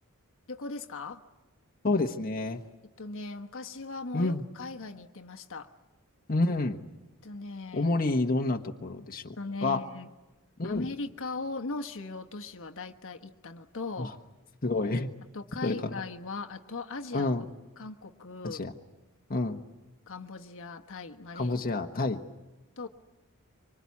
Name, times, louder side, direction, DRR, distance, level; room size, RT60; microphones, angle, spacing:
voice 1, 0.5-1.2 3.0-5.7 7.2-7.9 9.4-10.1 10.6-14.1 15.3-17.4 17.8-18.6 20.1-21.5 22.8-22.9, left 3 dB, 60° left, 4 dB, 1.3 m, -39 dB
voice 2, 1.8-2.6 4.1-4.4 6.3-6.8 7.7-9.3 9.6-9.8 10.6-10.9 14.0-14.1 14.6-15.1 15.6-16.0 17.1-17.5 18.4-18.7 19.3-19.6 21.3-22.2, left 2 dB, 40° left, 3 dB, 1.2 m, -28 dB
25.0 x 25.0 x 8.5 m, 1.1 s
head